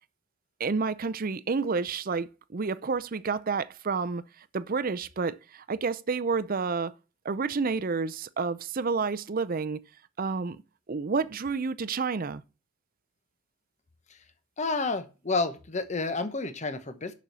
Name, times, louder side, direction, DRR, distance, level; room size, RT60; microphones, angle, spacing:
voice 1, 0.6-4.2 4.5-6.9 7.2-9.8 10.2-10.6 10.9-12.4, right 4 dB, 40° right, 0.5 m, -29 dB
voice 2, 14.6-17.1, left 3 dB, 30° left, 0.9 m, -30 dB
7.0 x 6.3 x 6.7 m
head